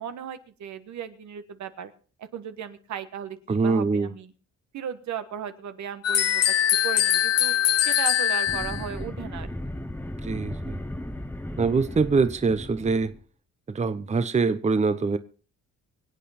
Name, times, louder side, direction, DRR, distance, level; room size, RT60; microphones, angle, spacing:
voice 1, 0.0-1.9 2.2-4.3 4.7-6.5 6.8-7.5 7.9-9.5, right 8 dB, 70° right, 1.4 m, -36 dB
voice 2, 3.5-4.1 10.2-10.8 11.6-13.1 13.7-15.2, right 4 dB, 25° right, 0.8 m, -24 dB
sound 1, 6.0-8.9, left 11 dB, 55° left, 0.8 m, -22 dB
sound 2, 8.5-13.2, left 1 dB, 5° left, 1.1 m, -36 dB
24.5 x 8.4 x 4.2 m
cardioid pair, 90°, 30 cm